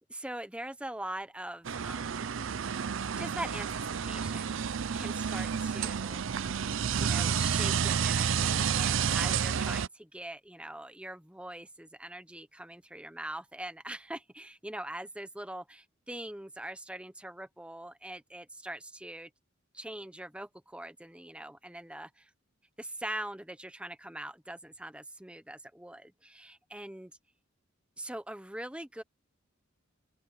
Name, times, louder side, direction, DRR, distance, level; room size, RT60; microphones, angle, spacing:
voice 1, 0.1-2.3 3.2-6.2 7.0-19.3 19.7-22.3 22.8-27.1 28.0-29.0, right 1 dB, 5° right, 1.0 m, -42 dB
sound 1, 1.6-9.9, right 7 dB, 70° right, 0.5 m, -30 dB
open air
head